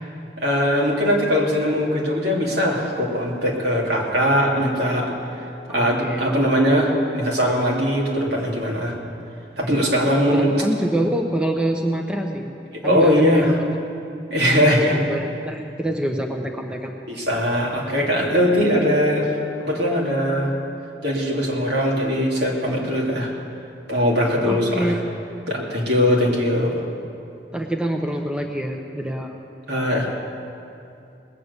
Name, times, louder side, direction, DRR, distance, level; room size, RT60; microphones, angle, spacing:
voice 1, 0.4-5.1 5.7-9.0 9.6-10.6 12.8-13.5 14.3-15.0 17.1-19.4 19.6-20.5 21.0-23.3 23.9-25.0 25.5-26.7 29.7-30.1, equal, 75° right, -3 dB, 2.8 m, -20 dB
voice 2, 5.7-6.6 9.6-9.8 10.3-12.5 12.8-13.6 14.6-16.9 24.5-25.1 27.5-29.3, right 1 dB, 5° right, 2 dB, 0.7 m, -26 dB
19.5 x 7.7 x 8.1 m, 2.7 s
head